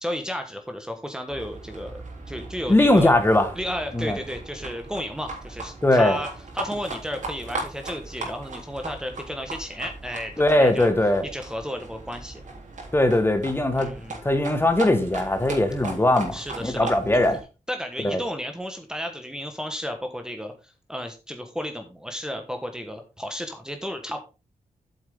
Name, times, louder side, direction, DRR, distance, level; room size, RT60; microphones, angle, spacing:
voice 1, 0.0-2.0 2.3-3.1 3.5-6.3 6.5-10.9 11.2-12.4 13.8-14.2 16.3-17.4 17.7-24.2, equal, 5° right, 1.3 m, -33 dB
Livestock farm animals working animals, 1.3-17.4, right 3 dB, 65° right, 3.4 m, -38 dB
voice 2, 2.7-3.5 3.9-4.2 5.8-6.2 10.4-11.2 12.9-13.9 14.2-17.4 18.0-18.2, left 1 dB, 15° left, 1.6 m, -20 dB
8.7 x 7.4 x 3.7 m
cardioid pair, 90°, 14 cm